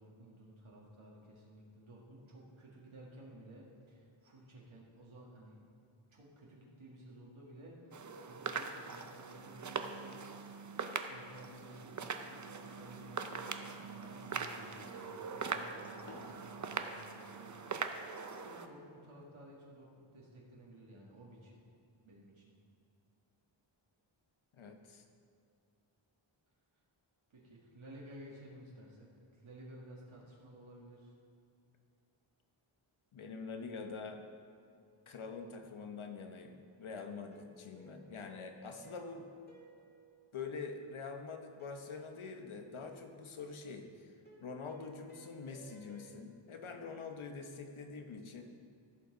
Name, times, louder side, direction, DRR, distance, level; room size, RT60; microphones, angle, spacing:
voice 1, 0.0-5.6 6.1-10.1 11.1-13.3 13.6-21.6 22.0-22.5 27.3-31.1, right 1 dB, 75° right, -4 dB, 1.8 m, -55 dB
sound 1, 7.9-18.7, right 5 dB, 40° right, 0.5 m, -42 dB
sound 2, 12.8-13.1 13.4-13.7 14.0-14.4 14.8-15.1 15.4-15.7 16.1-16.4 16.8-17.1, left 1 dB, 60° left, 1.7 m, -56 dB
voice 2, 24.5-25.0 33.1-34.3 35.1-39.3 40.3-44.1 44.4-48.4, left 4 dB, 75° left, 5 dB, 0.9 m, -45 dB
sound 3, 33.8-35.3 37.3-41.0 41.6-43.1 44.3-46.1, right 1 dB, 20° left, 1.8 m, -60 dB
14.5 x 5.5 x 3.9 m, 2.4 s
wide cardioid pair, 90°, 49 cm